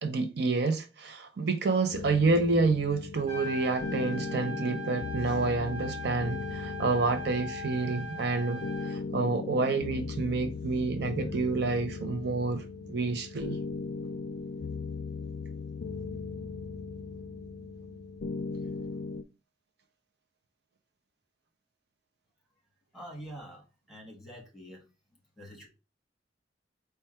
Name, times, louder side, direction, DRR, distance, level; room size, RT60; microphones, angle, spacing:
voice 1, 0.0-13.6, right 3 dB, 60° right, 0.5 m, -29 dB
sound 1, 1.9-19.2, left 4 dB, 55° left, 0.4 m, -38 dB
Trumpet, 3.2-9.0, left 1 dB, 40° right, 1.7 m, -40 dB
voice 2, 22.9-23.6 23.9-24.8 25.4-25.7, equal, ahead, 1.3 m, -45 dB
4.5 x 2.3 x 4.2 m
head